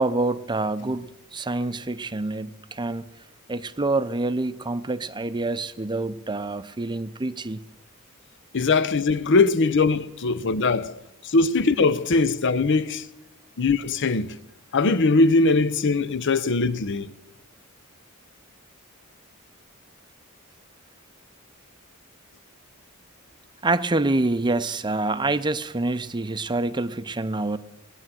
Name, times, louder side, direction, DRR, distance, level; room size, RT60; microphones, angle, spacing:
voice 1, 0.0-3.0 3.5-7.6 23.6-27.6, right 2 dB, 20° right, 0.6 m, -26 dB
voice 2, 8.5-10.9 11.2-13.0 13.6-14.3 14.7-17.1, left 3 dB, 60° left, 0.7 m, -21 dB
19.0 x 9.9 x 7.7 m
head